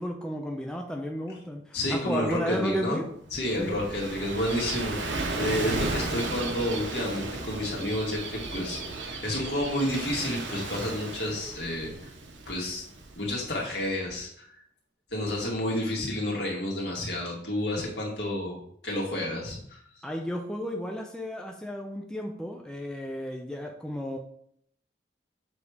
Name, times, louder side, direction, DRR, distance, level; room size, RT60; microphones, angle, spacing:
voice 1, 0.0-3.1 3.6-3.9 20.0-24.2, equal, 5° left, 1 dB, 0.5 m, -33 dB
voice 2, 1.7-3.0 3.3-11.9 12.5-12.8 13.2-14.6 15.1-18.6 18.8-19.8, left 1 dB, 70° left, -3 dB, 2.1 m, -30 dB
Gull seagull / Waves surf, 3.2-13.8, right 3 dB, 90° right, 1.0 m, -35 dB
7.1 x 3.3 x 5.0 m, 0.66 s
head